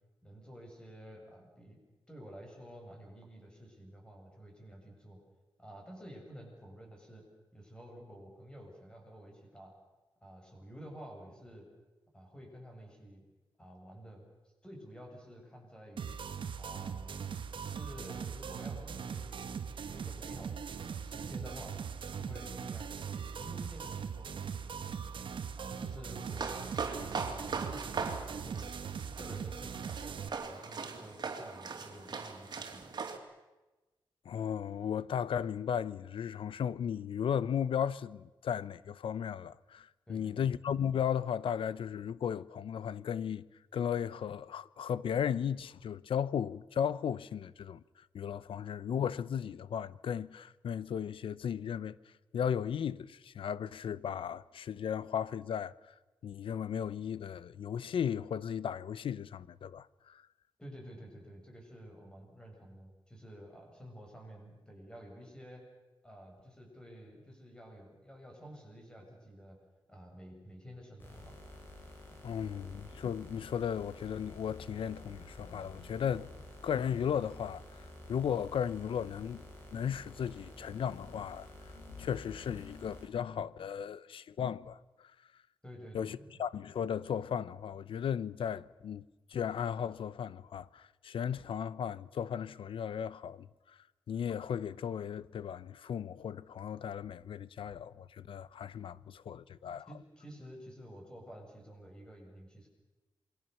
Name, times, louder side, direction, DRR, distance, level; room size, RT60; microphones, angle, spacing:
voice 1, 0.2-1.8 2.1-5.2 5.6-7.3 7.5-9.7 10.2-11.7 12.1-13.2 13.6-14.2 14.6-16.2 16.6-17.2 17.6-23.0 23.4-25.0 25.6-26.6 26.8-30.2 30.5-32.9 40.1-40.5 60.6-65.7 66.0-69.6 69.9-71.4 72.1-72.7 85.6-86.4 99.9-102.7, equal, 10° left, 7.8 m, -51 dB
sound 1, 16.0-30.3, right 6 dB, 70° right, 1.4 m, -40 dB
sound 2, 26.2-33.2, right 5 dB, 55° right, 3.0 m, -40 dB
voice 2, 34.2-43.4 43.7-47.8 48.1-52.0 52.3-55.9 56.2-60.2 72.2-76.3 76.6-77.6 78.1-79.4 79.7-85.1 85.9-89.0 89.3-93.8 94.1-99.9, left 8 dB, 90° left, 0.8 m, -35 dB
sound 3, 71.0-83.1, left 1 dB, 25° left, 6.7 m, -51 dB
28.0 x 22.5 x 7.1 m
wide cardioid pair, 125°, 9 cm